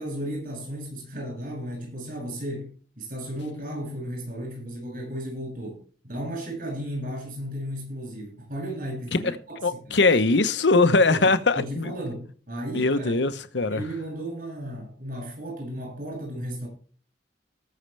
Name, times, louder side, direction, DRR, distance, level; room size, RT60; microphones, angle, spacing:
voice 1, 0.0-5.8 6.0-10.0 11.1-11.3 11.6-13.2 13.7-16.7, equal, 50° right, 7.2 m, -34 dB
voice 2, 9.6-11.9 12.7-13.8, left 3 dB, 85° left, 1.0 m, -21 dB
19.5 x 6.6 x 3.4 m
head